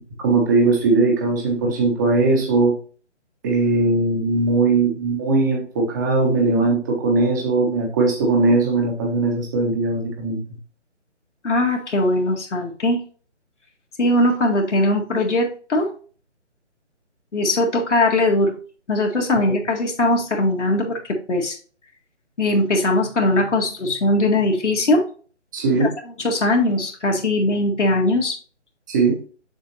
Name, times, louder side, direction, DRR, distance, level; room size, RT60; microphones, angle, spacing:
voice 1, 0.2-2.7 3.4-10.4 25.5-25.9 28.9-29.2, right 3 dB, 15° right, 1 dB, 1.2 m, -19 dB
voice 2, 11.4-13.0 14.0-15.9 17.3-18.5 18.9-21.6 22.4-25.0 25.8-25.9 26.2-28.4, left 1 dB, 75° left, 0 dB, 1.9 m, -20 dB
7.2 x 6.2 x 2.8 m, 0.41 s
hypercardioid pair, 165°, 36 cm